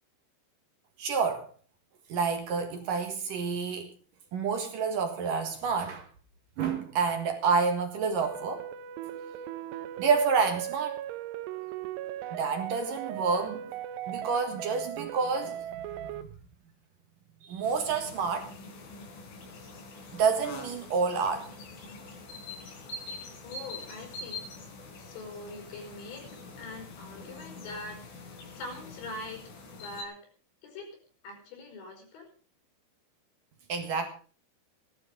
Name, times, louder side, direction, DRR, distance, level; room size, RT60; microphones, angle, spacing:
voice 1, 1.0-1.5 2.1-3.9 4.3-6.1 6.6-8.6 10.0-11.0 12.3-13.7 14.1-16.3 17.4-18.5 20.1-21.5 33.7-34.1, right 5 dB, 60° right, 2.7 m, -29 dB
sound 1, 8.2-16.2, right 11 dB, 75° right, 2.6 m, -38 dB
sound 2, 17.6-30.0, left 3 dB, 90° left, 6.0 m, -45 dB
voice 2, 23.4-24.5 25.0-26.3 26.6-30.2 30.6-31.0 31.2-32.3, left 2 dB, 70° left, 6.7 m, -43 dB
16.5 x 12.0 x 5.1 m
omnidirectional pair, 5.5 m